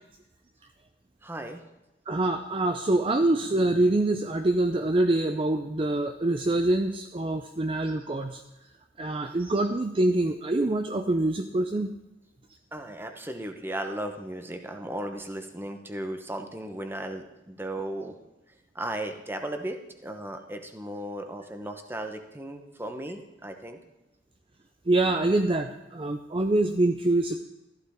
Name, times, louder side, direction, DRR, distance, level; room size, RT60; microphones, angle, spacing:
voice 1, 1.2-1.6 12.7-18.2 18.7-23.8, right 1 dB, 15° right, 6 dB, 1.0 m, -36 dB
voice 2, 2.1-8.4 9.0-11.9 24.9-27.4, right 2 dB, 30° right, 6 dB, 0.5 m, -25 dB
14.5 x 11.5 x 3.7 m, 1.0 s
head